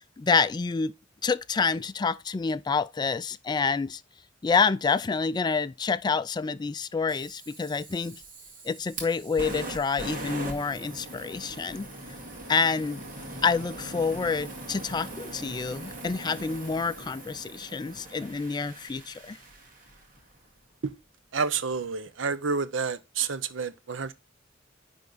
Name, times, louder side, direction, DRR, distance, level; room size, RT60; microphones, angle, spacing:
voice 1, 0.2-0.9 1.2-4.0 4.4-8.2 8.6-11.9 12.5-13.0 13.4-19.4, left 5 dB, 20° left, 0.3 m, -28 dB
Fire, 7.1-20.2, right 1 dB, 50° right, 2.1 m, -41 dB
voice 2, 21.3-24.1, right 5 dB, 85° right, 0.7 m, -29 dB
10.0 x 3.5 x 3.9 m
head